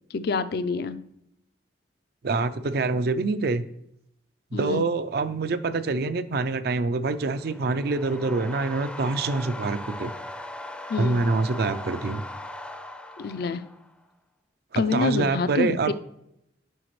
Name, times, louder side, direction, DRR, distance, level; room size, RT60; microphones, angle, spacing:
voice 1, 0.1-1.0 4.5-4.8 10.9-11.3 13.2-13.6 14.7-15.9, left 4 dB, 60° left, 12 dB, 0.4 m, -27 dB
voice 2, 2.2-3.6 4.5-10.1 11.0-12.2 14.7-15.9, right 3 dB, 60° right, 12 dB, 0.4 m, -26 dB
sound 1, 6.9-14.0, left 1 dB, 5° left, 0.5 m, -39 dB
10.0 x 5.0 x 3.1 m, 0.78 s
head